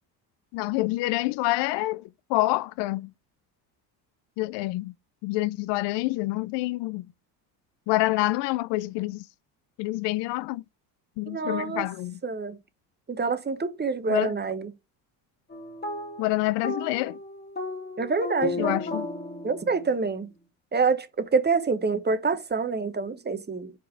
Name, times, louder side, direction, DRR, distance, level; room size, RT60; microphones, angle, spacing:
voice 1, 0.5-3.1 4.4-4.9 5.2-7.1 7.9-9.3 9.8-10.6 11.2-12.2 14.1-14.3 16.2-17.2 18.6-19.1, left 19 dB, 65° left, 0.5 m, -27 dB
voice 2, 11.3-11.9 12.2-12.6 13.1-14.7 18.0-18.8 19.4-20.3 20.7-23.7, right 4 dB, 20° right, 1.1 m, -26 dB
sound 1, 15.5-20.1, left 2 dB, 20° left, 2.6 m, -34 dB
4.8 x 4.4 x 5.6 m
supercardioid pair, 75°, 47 cm